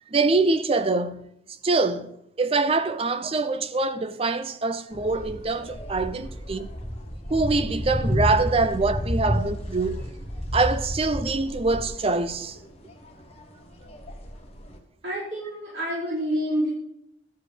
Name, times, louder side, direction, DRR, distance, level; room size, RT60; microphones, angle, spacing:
voice 1, 0.1-1.3 1.6-6.7 7.3-10.1 10.5-12.6, right 3 dB, 30° right, 0.6 m, -24 dB
sound 1, 4.9-14.8, equal, 35° left, 1.3 m, -31 dB
voice 2, 15.0-16.7, equal, 75° right, 5.0 m, -28 dB
12.0 x 5.0 x 7.4 m
head